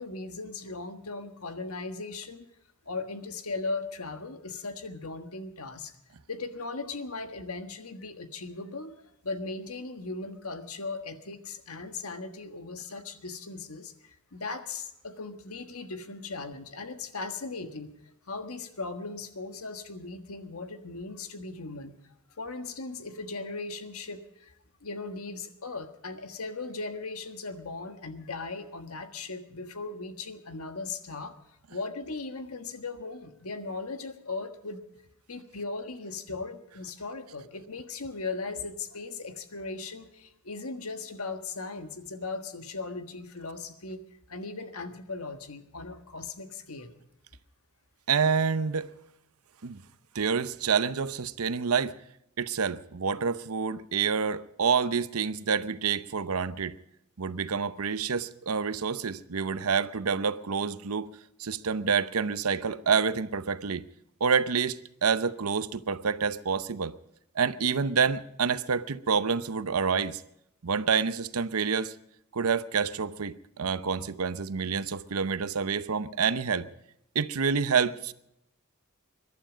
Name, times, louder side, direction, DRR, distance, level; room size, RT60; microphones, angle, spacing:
voice 1, 0.0-2.5 2.8-5.9 6.3-17.9 18.3-24.5 24.8-34.9 35.3-44.0 44.3-47.0, left 3 dB, 80° left, 1.5 m, -38 dB
voice 2, 48.1-48.9 49.6-49.8 50.1-51.9 52.4-56.7 57.2-61.1 61.4-63.8 64.2-66.9 67.4-70.2 70.6-71.9 72.3-76.7 77.1-78.1, right 6 dB, 90° right, 0.8 m, -28 dB
22.0 x 11.5 x 5.1 m
head